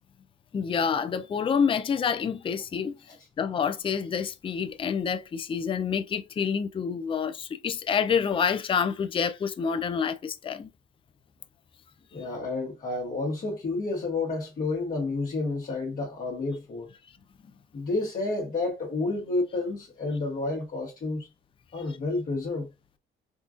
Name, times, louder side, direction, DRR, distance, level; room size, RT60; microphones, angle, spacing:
voice 1, 0.5-2.9 3.4-10.7, left 6 dB, 25° left, 0.4 m, -27 dB
voice 2, 12.1-16.9 17.7-21.3 21.7-22.7, left 3 dB, 45° left, 1.1 m, -30 dB
3.7 x 2.3 x 2.4 m
cardioid pair, 90°, 20 cm